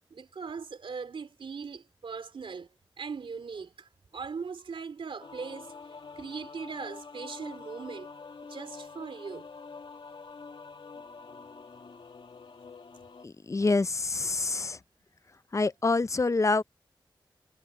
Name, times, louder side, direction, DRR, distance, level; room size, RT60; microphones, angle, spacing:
voice 1, 0.1-2.7 3.0-5.7 6.2-8.1 8.4-9.5, right 5 dB, 85° right, 3.0 m, -40 dB
sound 1, 5.2-13.3, left 4 dB, 70° left, 2.0 m, -46 dB
voice 2, 13.2-14.8 15.5-16.6, left 3 dB, 35° left, 0.5 m, -26 dB
wide cardioid pair, 75°, 9 cm